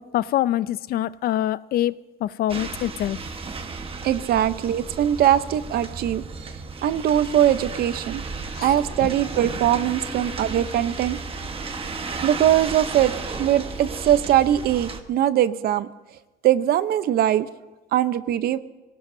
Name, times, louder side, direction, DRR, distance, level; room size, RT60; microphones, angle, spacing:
voice 1, 0.0-1.9 2.2-3.2 8.5-8.7, left 13 dB, 65° left, 18 dB, 0.5 m, -24 dB
sound 1, 2.5-15.0, right 4 dB, 35° right, 1.3 m, -34 dB
voice 2, 4.0-6.2 6.8-8.2 8.6-11.2 12.2-13.1 13.4-15.9 16.4-17.5 17.9-18.6, right 11 dB, 65° right, 13 dB, 0.8 m, -21 dB
sound 2, 8.6-14.6, left 3 dB, 30° left, 1.7 m, -43 dB
23.5 x 17.5 x 2.7 m, 1.1 s
cardioid pair, 110°, 17 cm